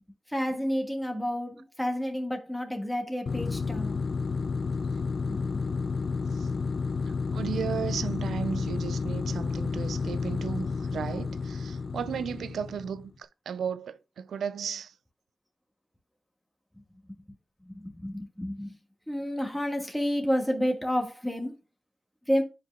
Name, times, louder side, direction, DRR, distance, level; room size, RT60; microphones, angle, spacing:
voice 1, 0.3-4.0 5.3-5.6 17.7-18.7 19.1-21.5 22.3-22.4, equal, 5° left, 1.5 m, -30 dB
sound 1, 3.3-13.1, left 4 dB, 60° left, 0.3 m, -31 dB
voice 2, 7.1-14.9, right 7 dB, 85° right, 0.3 m, -35 dB
8.9 x 4.8 x 2.3 m
supercardioid pair, 45°, 0 cm